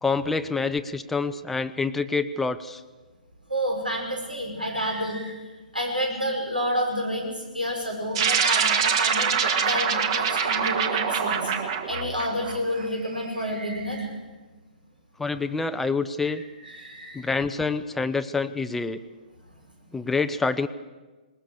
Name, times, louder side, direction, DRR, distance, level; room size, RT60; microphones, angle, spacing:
voice 1, 0.0-2.8 15.2-16.4 17.1-19.0 19.9-20.7, left 4 dB, 5° left, 9 dB, 0.6 m, -27 dB
voice 2, 3.5-5.4 5.7-11.5 11.9-14.1 16.3-17.3, equal, 85° right, 1 dB, 6.3 m, -29 dB
sound 1, 8.1-12.8, right 7 dB, 35° right, 1.8 m, -24 dB
20.5 x 20.0 x 6.8 m, 1.3 s
figure-of-eight pair, 125°, 5 cm